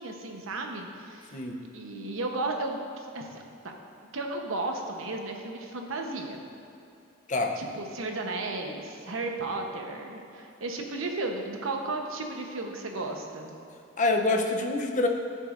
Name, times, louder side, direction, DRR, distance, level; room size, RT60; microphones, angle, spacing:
voice 1, 0.0-1.4 1.7-3.7 4.1-6.4 7.6-13.5, right 2 dB, 80° right, 2 dB, 0.9 m, -34 dB
voice 2, 14.0-15.1, left 2 dB, 35° left, 3 dB, 0.6 m, -26 dB
15.0 x 6.4 x 2.5 m, 2.8 s
head